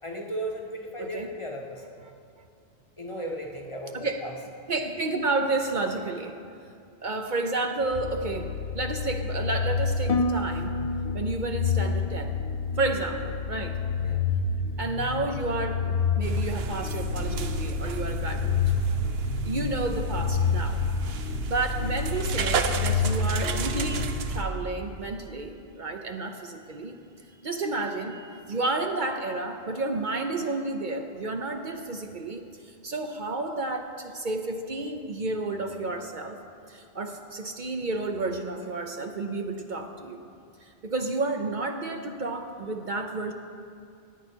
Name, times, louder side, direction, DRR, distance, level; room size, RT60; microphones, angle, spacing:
voice 1, 0.0-1.9 3.0-4.3 14.0-14.2, equal, 30° left, 0 dB, 1.1 m, -35 dB
voice 2, 4.7-6.3 7.0-8.5 8.7-10.8 11.1-12.4 12.8-13.8 14.8-18.6 19.4-20.8 21.5-26.9 27.4-36.4 36.7-40.2 40.6-43.3, right 2 dB, 50° right, 4 dB, 0.8 m, -31 dB
sound 1, 7.9-24.7, left 5 dB, 80° left, 0.9 m, -29 dB
Harp, 10.1-14.2 14.5-15.0 15.6-15.9, left 2 dB, 50° left, 0.5 m, -33 dB
sound 2, 16.2-24.4, right 3 dB, 75° right, 0.9 m, -32 dB
16.5 x 9.5 x 4.5 m, 2.4 s
omnidirectional pair, 1.1 m